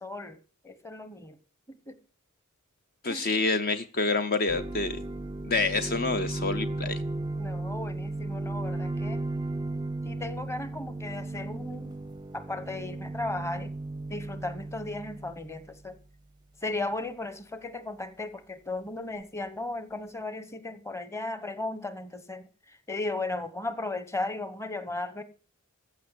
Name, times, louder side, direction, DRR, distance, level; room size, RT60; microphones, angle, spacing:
voice 1, 0.0-0.4 0.6-1.4 1.7-2.0 3.1-3.3 7.4-9.2 10.0-12.0 12.3-13.7 14.1-16.0 16.6-25.2, left 2 dB, 15° left, 1.1 m, -36 dB
voice 2, 3.0-5.0 5.4-7.0, left 3 dB, 45° left, 0.7 m, -27 dB
sound 1, 4.5-16.0, right 2 dB, 20° right, 0.6 m, -35 dB
15.0 x 6.0 x 8.3 m
head